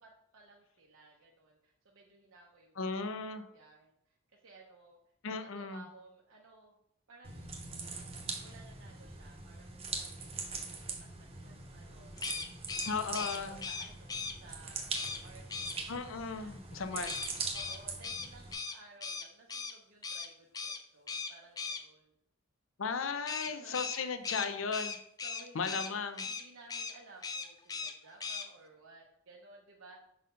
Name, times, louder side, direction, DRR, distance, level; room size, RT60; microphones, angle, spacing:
voice 1, 0.0-2.8 3.2-5.0 5.3-6.7 7.1-7.8 8.4-15.8 16.3-17.2 17.5-22.1 23.4-24.0 25.2-30.0, right 3 dB, 85° right, -2 dB, 0.8 m, -57 dB
voice 2, 2.8-3.4 5.2-5.8 12.8-13.6 15.9-17.1 22.8-25.0 25.5-26.2, left 5 dB, 75° left, 9 dB, 0.6 m, -36 dB
sound 1, 7.2-18.5, right 4 dB, 30° right, 0.8 m, -42 dB
sound 2, 12.2-14.3 14.9-15.2 15.5-15.8 17.1-19.7 20.0-20.3 20.5-20.8 21.1-21.8 23.3-25.9 26.2-26.4 26.7-26.9 27.2-27.9 28.2-28.4, left 5 dB, 20° left, 0.4 m, -38 dB
5.1 x 4.1 x 5.5 m, 0.75 s
head